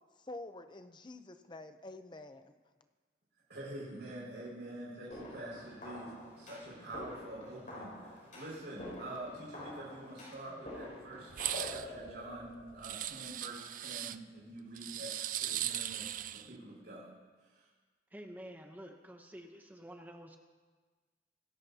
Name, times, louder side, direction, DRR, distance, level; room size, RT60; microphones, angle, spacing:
voice 1, 0.2-2.5, left 2 dB, 25° left, 9 dB, 0.7 m, -48 dB
voice 2, 3.5-17.7, right 1 dB, 70° right, -8 dB, 5.6 m, -47 dB
sound 1, 5.1-13.2, left 1 dB, 45° left, 6.1 m, -47 dB
sound 2, 6.1-6.2 6.8-6.9 7.1-7.2 8.1-8.5 8.8-9.9 10.2-10.8 11.5-13.4, equal, 80° left, 3.9 m, -63 dB
sound 3, 11.3-11.9 12.8-14.2 14.8-16.5, right 12 dB, 45° right, 0.4 m, -38 dB
voice 3, 18.1-20.4, equal, 10° right, 3 dB, 0.8 m, -49 dB
26.5 x 13.5 x 2.8 m, 1.4 s
head